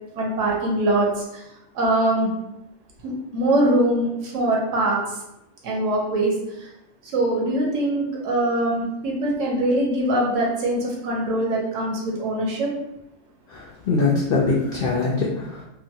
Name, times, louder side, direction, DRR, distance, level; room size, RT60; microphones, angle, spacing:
voice 1, 0.1-1.4 1.7-2.3 3.0-5.2 5.6-6.7 7.0-12.7, right 1 dB, 65° right, -2 dB, 1.0 m, -23 dB
voice 2, 13.5-15.6, left 3 dB, 85° left, -3 dB, 0.5 m, -23 dB
2.9 x 2.2 x 2.7 m, 0.88 s
omnidirectional pair, 1.5 m